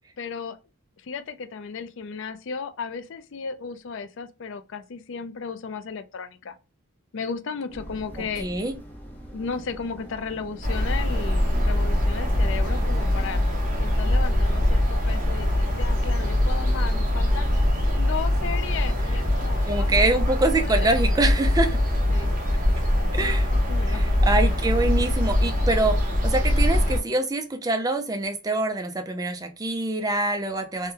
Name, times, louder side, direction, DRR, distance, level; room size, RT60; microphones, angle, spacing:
voice 1, 0.2-0.6 1.0-6.5 7.1-8.5 9.3-13.4 13.8-17.5 18.0-20.3 20.6-21.0 22.1-22.3 22.9-24.1, left 5 dB, 55° left, 0.4 m, -35 dB
sound 1, 7.7-13.4, right 1 dB, 10° left, 0.7 m, -42 dB
voice 2, 8.2-8.7 19.7-21.8 23.1-23.5 23.9-26.0 26.2-30.9, right 2 dB, 15° right, 0.4 m, -25 dB
sound 2, 10.6-27.0, left 1 dB, 35° right, 0.9 m, -22 dB
3.5 x 2.2 x 2.8 m
head